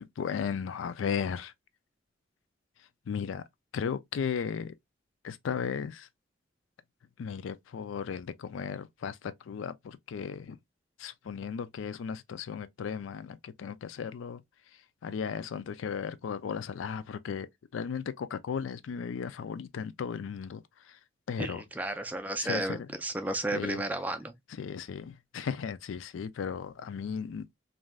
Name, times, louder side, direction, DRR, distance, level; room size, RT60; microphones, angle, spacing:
voice 1, 0.0-1.5 3.1-3.4 3.7-4.7 5.2-6.1 7.2-10.6 11.0-14.4 15.0-17.5 17.7-21.0 21.3-21.6 22.4-22.9 23.5-23.8 24.6-27.6, left 6 dB, 85° left, 0.4 m, -35 dB
voice 2, 21.4-24.3, right 1 dB, 10° right, 0.4 m, -33 dB
3.2 x 2.5 x 2.2 m
head